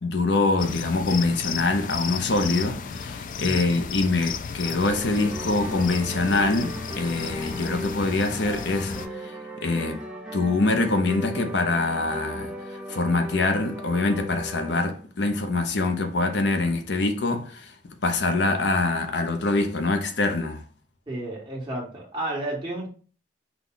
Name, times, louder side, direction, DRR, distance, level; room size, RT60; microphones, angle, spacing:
voice 1, 0.0-9.3 9.6-10.0 10.3-12.5 12.9-17.7 18.0-20.6, left 3 dB, 70° left, 0.7 m, -24 dB
sound 1, 0.6-9.1, left 6 dB, 45° left, 0.3 m, -34 dB
voice 2, 3.3-3.8 21.1-22.9, right 1 dB, 25° right, 1.7 m, -32 dB
sound 2, 4.6-14.8, equal, 5° right, 0.7 m, -37 dB
5.9 x 2.3 x 3.8 m
head